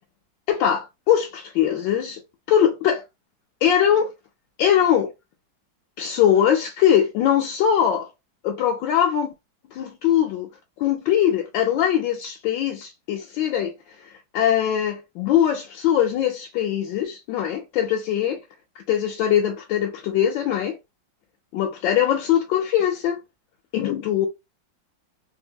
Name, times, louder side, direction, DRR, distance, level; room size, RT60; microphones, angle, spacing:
voice 1, 0.5-2.2 2.5-3.0 3.6-4.1 4.6-5.1 6.0-8.1 8.4-9.3 9.7-10.5 10.8-13.7 14.0-18.4 18.8-20.8 21.5-23.2 23.7-24.3, left 10 dB, 75° left, 1.3 m, -21 dB
3.4 x 2.6 x 2.8 m
omnidirectional pair, 2.1 m